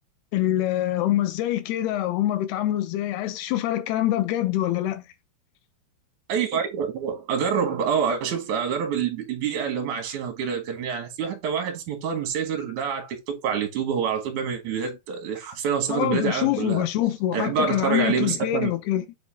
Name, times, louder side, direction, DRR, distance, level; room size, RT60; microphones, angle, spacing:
voice 1, 0.3-5.0 15.9-19.0, left 13 dB, 90° left, 2.8 m, -25 dB
voice 2, 6.3-16.9 17.3-18.7, right 7 dB, 55° right, 2.8 m, -27 dB
7.3 x 4.0 x 3.7 m
omnidirectional pair, 4.6 m